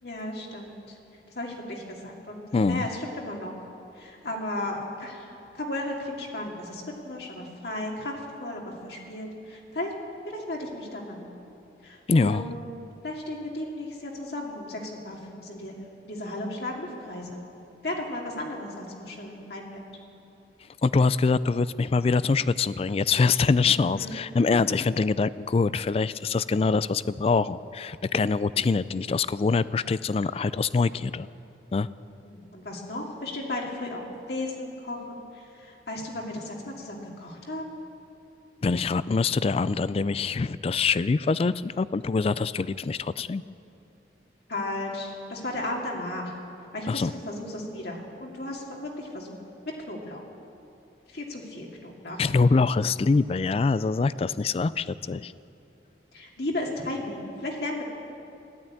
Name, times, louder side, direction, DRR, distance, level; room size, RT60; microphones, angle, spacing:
voice 1, 0.0-1.0 1.4-3.5 3.9-9.9 10.3-11.3 11.8-12.6 13.0-15.8 16.0-17.4 17.8-19.8 23.7-24.5 32.2-37.8 44.5-46.3 46.7-49.4 49.9-50.2 51.1-52.3 56.1-57.8, left 1 dB, 60° left, -1 dB, 2.4 m, -35 dB
voice 2, 2.5-2.9 12.1-12.4 20.8-31.3 31.7-31.9 38.6-43.4 46.9-47.1 52.2-55.3, left 4 dB, 35° left, 17 dB, 0.3 m, -24 dB
14.5 x 11.5 x 8.7 m, 2.9 s
head